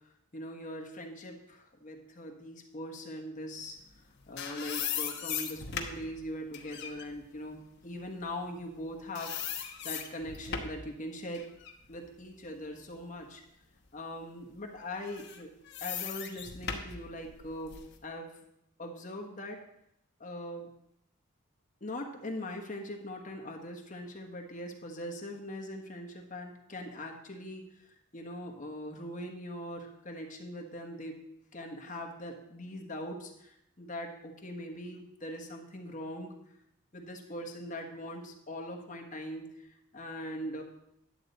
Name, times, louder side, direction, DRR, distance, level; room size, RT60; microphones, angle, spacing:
voice 1, 0.0-3.8 4.3-9.4 9.8-11.5 11.9-13.4 13.9-15.5 15.8-18.4 18.8-19.6 20.2-20.7 21.8-31.2 31.5-36.3 36.9-40.6, left 1 dB, 35° left, 2 dB, 1.2 m, -41 dB
sound 1, 3.9-8.8 9.1-10.9 11.3-13.3 13.8-13.9 14.9-17.9, left 7 dB, 50° left, 1.1 m, -39 dB
11.0 x 7.9 x 4.0 m, 0.79 s
head